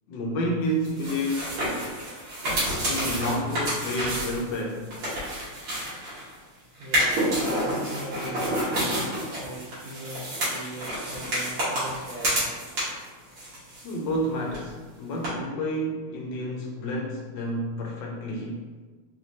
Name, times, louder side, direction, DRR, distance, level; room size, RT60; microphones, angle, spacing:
voice 1, 0.1-1.5 2.9-4.8 13.8-18.7, equal, 70° left, 0 dB, 1.2 m, -30 dB
sound 1, 0.8-6.3 6.8-13.1 13.4-14.2 14.5-14.6 15.2-15.3, equal, 85° right, 2.5 m, -29 dB
voice 2, 6.7-12.6, right 1 dB, 65° right, -9 dB, 1.5 m, -40 dB
5.0 x 3.0 x 2.7 m, 1.4 s
omnidirectional pair, 2.3 m